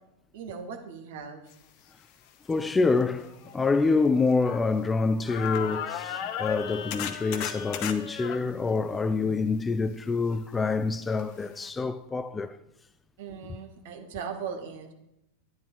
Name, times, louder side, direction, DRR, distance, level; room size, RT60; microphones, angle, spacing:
voice 1, 0.3-1.4 9.2-9.3 13.2-14.9, right 6 dB, 55° right, 2.0 m, -38 dB
sound 1, 2.5-2.6 3.2-5.0 5.3-8.4 11.2-11.3 11.6-11.7, left 9 dB, 45° left, 1.0 m, -35 dB
voice 2, 2.5-12.6, left 4 dB, 15° left, 0.5 m, -26 dB
11.0 x 9.8 x 4.7 m
figure-of-eight pair, 90°, 0 cm